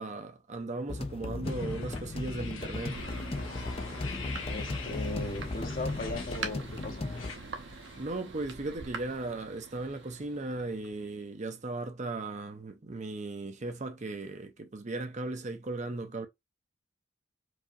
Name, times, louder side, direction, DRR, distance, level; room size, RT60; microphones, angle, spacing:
voice 1, 0.0-3.0 7.6-16.3, right 2 dB, 35° right, 0.6 m, -37 dB
sound 1, 0.9-7.3, left 2 dB, 30° left, 0.4 m, -36 dB
sound 2, 1.4-8.0, left 5 dB, 80° left, 1.1 m, -45 dB
Thunder, 2.9-11.2, right 4 dB, 60° right, 0.9 m, -44 dB
voice 2, 4.5-7.0, left 2 dB, 45° left, 0.9 m, -38 dB
4.8 x 2.7 x 2.5 m
head